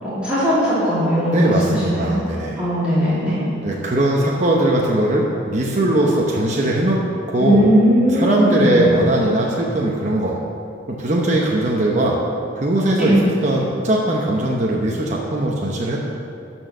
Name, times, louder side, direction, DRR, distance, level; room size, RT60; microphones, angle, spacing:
voice 1, 0.0-2.1 2.5-3.4 7.4-8.8 13.0-13.2, equal, 5° right, -12 dB, 2.6 m, -18 dB
voice 2, 1.3-2.6 3.6-7.0 7.3-7.7 8.1-10.4 10.9-12.2 12.5-13.2 13.4-16.0, right 1 dB, 40° right, -3 dB, 0.9 m, -19 dB
12.5 x 4.6 x 6.6 m, 2.6 s
head